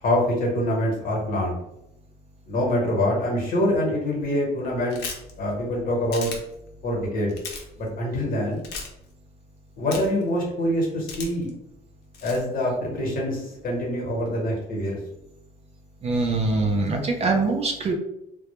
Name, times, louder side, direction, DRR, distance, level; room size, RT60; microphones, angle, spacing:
voice 1, 0.0-1.6 2.5-5.0 5.4-6.3 6.8-7.4 7.8-8.6 9.8-11.5 12.2-15.0, left 1 dB, 55° left, -2 dB, 1.0 m, -25 dB
sound 1, 4.9-5.3 6.1-6.4 7.3-7.6 8.6-8.9 9.9-10.2 11.1-11.5 12.1-12.4, left 4 dB, 75° left, 0.6 m, -34 dB
voice 2, 16.0-17.9, right 3 dB, 40° right, 2 dB, 0.4 m, -23 dB
2.0 x 2.0 x 2.9 m, 0.84 s
cardioid pair, 110°, 17 cm